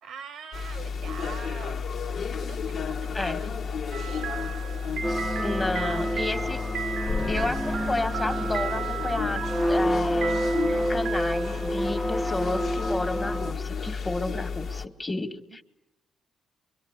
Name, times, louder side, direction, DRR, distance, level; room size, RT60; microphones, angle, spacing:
voice 1, 0.0-3.6 3.9-4.3 4.6-4.9 5.5-6.1, right 7 dB, 75° right, 1.7 m, -43 dB
sound 1, 0.5-14.8, left 5 dB, 60° left, 1.6 m, -32 dB
sound 2, 3.9-11.8, right 9 dB, 90° right, 1.9 m, -36 dB
sound 3, 5.0-13.5, equal, ahead, 1.1 m, -29 dB
voice 2, 5.4-6.6 7.3-10.4 10.7-15.6, left 2 dB, 20° left, 2.0 m, -31 dB
25.0 x 24.5 x 8.2 m
cardioid pair, 90°, 0 cm